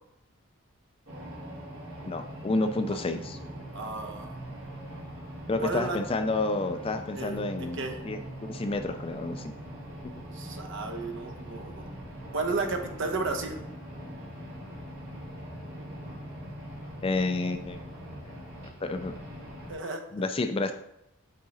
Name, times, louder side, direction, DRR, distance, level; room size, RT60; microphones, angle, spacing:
sound 1, 1.1-19.7, equal, 75° right, 2.4 m, -42 dB
voice 1, 2.1-3.4 5.5-9.5 17.0-17.8 18.2-18.3 18.6-19.1 20.1-20.7, left 2 dB, 25° left, 8 dB, 0.3 m, -30 dB
voice 2, 3.7-4.4 5.6-6.0 7.2-8.0 10.2-11.9 12.3-13.6 19.7-20.0, right 3 dB, 55° right, 3 dB, 0.9 m, -33 dB
7.5 x 3.7 x 4.1 m, 0.80 s
head